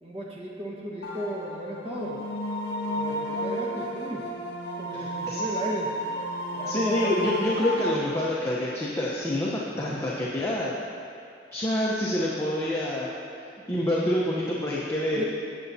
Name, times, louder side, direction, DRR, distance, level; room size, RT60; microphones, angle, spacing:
voice 1, 0.0-2.2 3.0-4.2 4.8-5.9 6.6-7.3 13.6-13.7 15.1-15.2, equal, 35° right, -2 dB, 1.4 m, -35 dB
sound 1, 1.0-7.9, equal, 65° left, 1.8 m, -32 dB
voice 2, 5.0-5.4 6.7-10.7 11.5-13.1 13.7-15.2, left 1 dB, 15° left, -6 dB, 0.9 m, -27 dB
17.0 x 7.0 x 2.8 m, 2.4 s
head